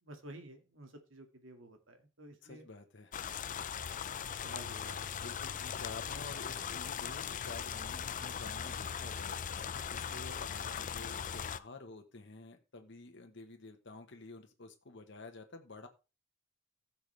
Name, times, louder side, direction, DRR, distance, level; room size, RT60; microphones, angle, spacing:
voice 1, 0.0-2.6 3.8-4.0 4.4-5.3, right 1 dB, 75° right, 2.2 m, -52 dB
voice 2, 2.4-3.2 5.1-15.9, left 3 dB, 65° left, 1.3 m, -50 dB
sound 1, 3.1-11.6, left 7 dB, 40° left, 0.5 m, -39 dB
15.0 x 7.1 x 3.4 m
head